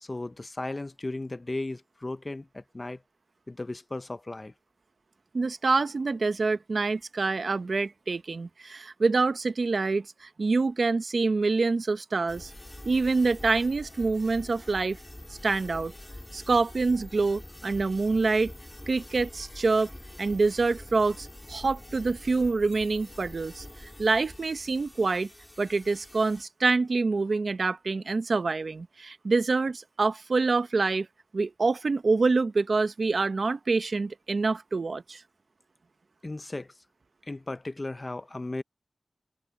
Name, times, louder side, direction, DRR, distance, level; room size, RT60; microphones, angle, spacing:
voice 1, 0.0-3.0 3.5-4.5 36.2-36.7 37.2-38.6, left 2 dB, 35° left, 0.8 m, -36 dB
voice 2, 5.3-12.5 12.8-15.0 15.4-15.9 16.3-18.5 18.9-19.9 20.2-23.6 24.0-25.3 25.6-31.1 31.3-35.2, right 3 dB, 70° right, 1.0 m, -26 dB
sound 1, 12.3-26.4, left 1 dB, 20° left, 3.6 m, -45 dB
wide cardioid pair, 65°, 0 cm